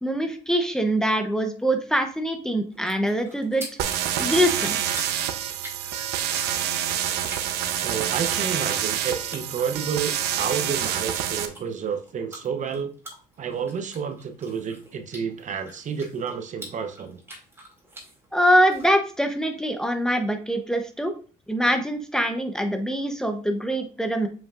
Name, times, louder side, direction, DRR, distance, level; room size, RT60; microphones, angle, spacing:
voice 1, 0.0-3.7 4.2-4.8 18.3-21.1 21.5-24.3, equal, 5° left, 6 dB, 0.8 m, -23 dB
sound 1, 2.7-18.9, right 1 dB, 15° right, 2.4 m, -46 dB
sound 2, 3.8-11.5, right 10 dB, 80° right, 0.8 m, -27 dB
voice 2, 7.8-12.9 13.4-17.2, right 7 dB, 45° right, 8 dB, 0.8 m, -30 dB
7.2 x 5.7 x 2.5 m, 0.39 s
cardioid pair, 110°, 17 cm